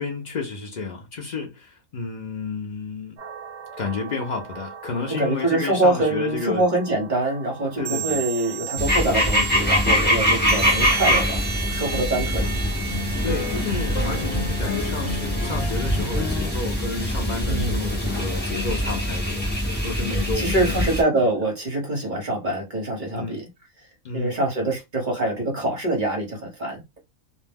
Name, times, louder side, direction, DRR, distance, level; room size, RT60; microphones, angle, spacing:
voice 1, 0.0-3.2 3.8-6.7 7.8-8.2 13.2-19.5 19.8-20.9 23.1-23.4 24.0-24.4, left 4 dB, 85° left, 0.4 m, -31 dB
sound 1, 3.2-20.3, right 7 dB, 55° right, 0.4 m, -37 dB
voice 2, 5.2-12.5 17.5-17.9 20.1-23.5 24.1-27.0, right 2 dB, 35° right, 1.0 m, -25 dB
sound 2, 8.8-21.0, equal, 15° left, 0.4 m, -24 dB
sound 3, 11.2-16.5, left 2 dB, 55° left, 1.0 m, -33 dB
2.5 x 2.1 x 3.4 m
omnidirectional pair, 1.5 m